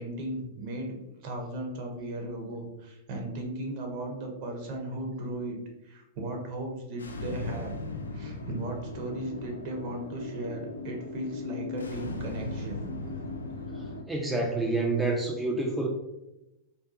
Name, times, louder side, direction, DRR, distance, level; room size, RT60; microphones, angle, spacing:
voice 1, 0.0-5.6 5.8-7.8 8.1-12.9, right 1 dB, 50° right, 1 dB, 0.7 m, -36 dB
sound 1, 7.0-14.0, left 3 dB, 80° left, 0.3 m, -38 dB
voice 2, 14.1-15.9, right 2 dB, 5° right, -1 dB, 0.3 m, -28 dB
2.5 x 2.3 x 2.4 m, 0.93 s
figure-of-eight pair, 95°, 0 cm